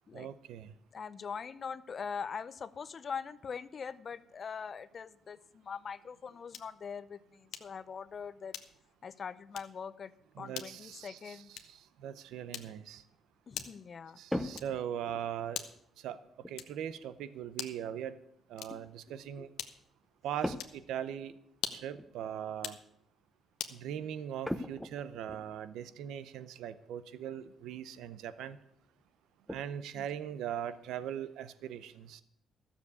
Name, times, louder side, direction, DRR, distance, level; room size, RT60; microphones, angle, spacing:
voice 1, 0.1-0.7 10.4-13.0 14.2-15.7 16.0-16.2 16.5-18.2 18.5-19.5 20.2-21.3 21.7-22.8 23.7-28.6 29.5-32.2, right 9 dB, 85° right, 14 dB, 0.7 m, -40 dB
voice 2, 0.9-8.6 9.0-11.5 13.5-14.2 18.7-18.8 19.3-19.5 25.3-25.4 29.9-30.1, left 6 dB, 45° left, 14 dB, 0.7 m, -42 dB
sound 1, 6.5-6.8 7.5-7.8 8.5-9.0 9.5-9.8 10.5-10.8 11.5-11.9 12.5-12.9 13.5-13.9 14.5-14.9 15.5-15.9 16.5-16.9 17.5-17.9 18.5-18.9 19.6-20.0 20.5-20.8 21.5-22.0 22.5-22.9 23.6-23.8, left 10 dB, 85° left, 1.0 m, -43 dB
sound 2, 14.3-15.4 16.4-16.6 20.4-20.9 21.2-21.3 21.9-22.1 24.4-25.4 26.8-26.9 27.4-27.5 27.9-28.1 28.5-28.6 29.0-29.7, left 1 dB, ahead, 0.9 m, -39 dB
13.5 x 7.2 x 8.3 m, 0.74 s
cardioid pair, 90°, 0 cm